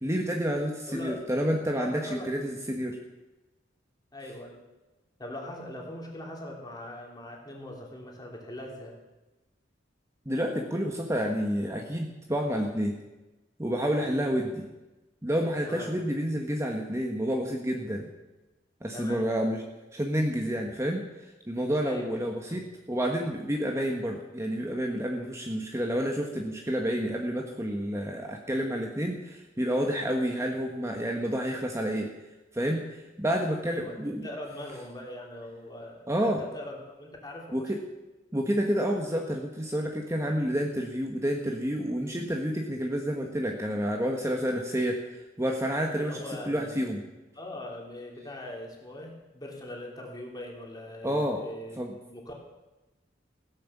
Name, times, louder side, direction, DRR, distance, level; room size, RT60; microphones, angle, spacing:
voice 1, 0.0-3.0 10.2-13.0 13.6-14.7 15.2-18.1 18.8-19.6 19.9-21.1 21.5-22.6 22.9-32.1 32.5-34.3 36.1-36.4 37.5-37.8 38.3-45.0 45.4-47.0 51.0-51.4 51.8-51.9, equal, 15° right, 1 dB, 1.3 m, -29 dB
voice 2, 0.9-1.2 1.7-2.4 4.1-4.6 5.2-9.0 15.6-16.0 18.9-19.4 21.8-22.6 33.6-36.1 36.4-37.6 45.9-47.0 47.3-51.8 52.1-52.3, left 1 dB, 20° left, -1 dB, 3.3 m, -41 dB
16.0 x 10.5 x 7.3 m, 1.1 s
head